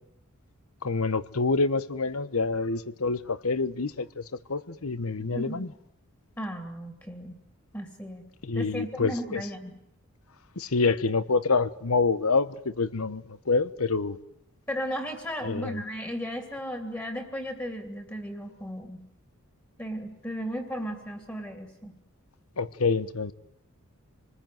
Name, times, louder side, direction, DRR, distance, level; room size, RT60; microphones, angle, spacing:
voice 1, 0.8-4.2 4.5-5.7 8.4-9.4 10.6-14.2 15.4-15.8 22.6-23.3, left 4 dB, 90° left, 1.1 m, -27 dB
voice 2, 5.2-5.7 6.4-7.4 7.7-8.2 8.5-9.8 14.7-19.0 19.8-21.9, equal, 15° left, 2.7 m, -35 dB
27.0 x 20.5 x 9.3 m
head